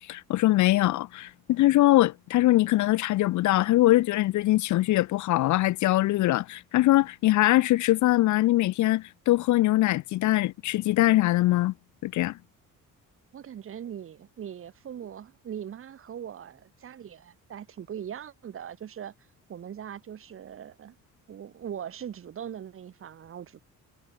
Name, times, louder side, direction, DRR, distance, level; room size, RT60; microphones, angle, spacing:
voice 1, 0.0-11.7 12.0-12.4, left 16 dB, 65° left, 0.5 m, -22 dB
voice 2, 13.3-19.1 19.5-21.0 21.3-23.6, right 9 dB, 40° right, 2.1 m, -40 dB
cardioid pair, 180°, 33 cm